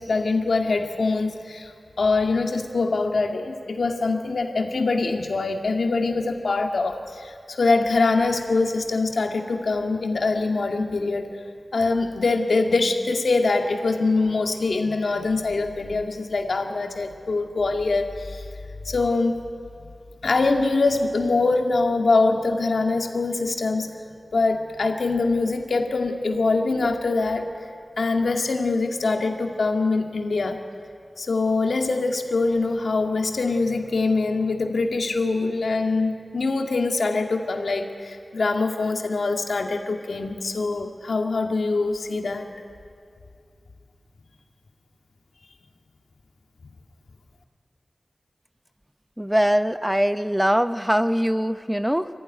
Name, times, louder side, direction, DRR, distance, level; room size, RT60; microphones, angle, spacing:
voice 1, 0.0-1.7 2.0-11.3 11.7-18.4 18.8-19.4 20.2-23.9 24.3-27.5 28.0-30.6 31.2-42.5, left 3 dB, 80° left, 3 dB, 1.9 m, -23 dB
voice 2, 49.2-52.1, equal, 5° right, 11 dB, 0.7 m, -22 dB
24.0 x 15.0 x 9.8 m, 2.4 s
wide cardioid pair, 70°, 0 cm